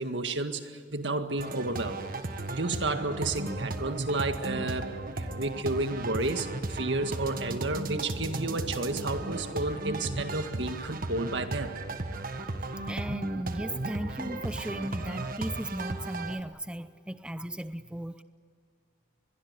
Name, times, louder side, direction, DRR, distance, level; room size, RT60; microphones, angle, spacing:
voice 1, 0.0-2.0 2.5-11.7, right 2 dB, 70° right, 7 dB, 1.9 m, -31 dB
sound 1, 1.4-16.4, right 2 dB, 50° right, 1.5 m, -35 dB
voice 2, 12.9-18.2, right 1 dB, 5° right, 12 dB, 0.5 m, -36 dB
24.5 x 21.5 x 8.2 m, 2.3 s
head